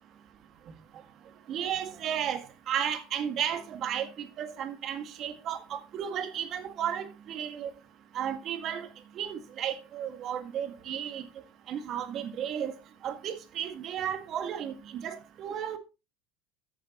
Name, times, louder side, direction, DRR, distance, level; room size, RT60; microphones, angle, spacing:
voice 1, 1.5-7.7 8.1-8.9 9.2-11.3 11.7-12.7 13.0-15.8, right 9 dB, 50° right, 1.9 m, -34 dB
13.5 x 8.7 x 3.0 m
hypercardioid pair, 80°, 0 cm